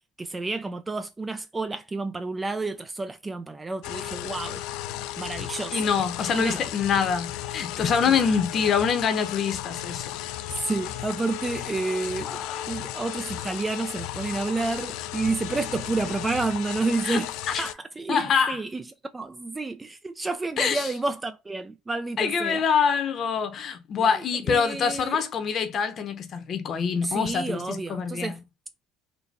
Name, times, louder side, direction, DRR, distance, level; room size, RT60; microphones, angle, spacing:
voice 1, 0.2-4.6 5.2-5.8 6.3-6.6 8.1-8.7 10.5-12.4 12.7-18.8 19.1-22.6 24.1-25.2 27.0-28.4, right 3 dB, 20° right, 0.3 m, -30 dB
sound 1, 3.8-17.7, left 13 dB, 75° left, 0.3 m, -35 dB
voice 2, 5.7-10.2 12.3-12.7 17.0-17.2 17.5-17.6 18.1-18.6 20.6-20.9 22.2-28.3, left 6 dB, 45° left, 0.8 m, -25 dB
3.9 x 2.2 x 3.4 m
supercardioid pair, 100°, 0 cm